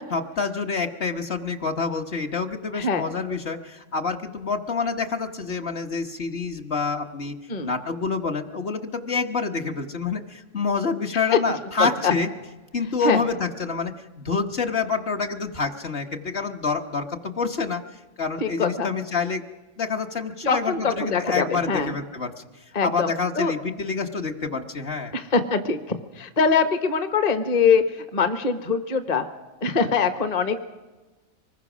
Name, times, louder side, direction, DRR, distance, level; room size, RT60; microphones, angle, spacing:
voice 1, 0.1-7.4 7.6-12.3 12.7-17.8 18.2-19.4 19.8-22.3 22.8-25.1, left 4 dB, 45° left, 3 dB, 1.3 m, -27 dB
voice 2, 11.8-12.1 13.0-13.2 18.4-18.9 20.4-21.9 22.7-23.1 23.4-23.5 25.1-29.2 29.6-30.6, left 5 dB, 30° left, 10 dB, 1.1 m, -23 dB
24.5 x 21.0 x 6.1 m, 1.2 s
omnidirectional pair, 1.5 m